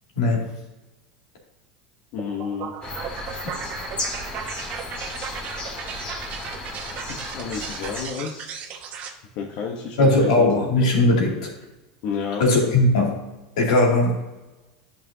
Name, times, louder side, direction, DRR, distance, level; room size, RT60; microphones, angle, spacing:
voice 1, 0.1-0.5 10.0-11.5 12.4-13.3 13.6-14.2, left 2 dB, 80° left, -1 dB, 2.5 m, -19 dB
voice 2, 2.1-2.7 7.2-8.5 9.4-10.7 12.0-12.4, left 6 dB, 60° left, -1 dB, 1.0 m, -31 dB
sound 1, 2.2-9.1, right 7 dB, 45° right, 1.0 m, -36 dB
sound 2, 2.8-8.1, left 2 dB, 25° left, 1.9 m, -34 dB
10.5 x 5.7 x 2.8 m, 1.1 s
supercardioid pair, 110°, 4 cm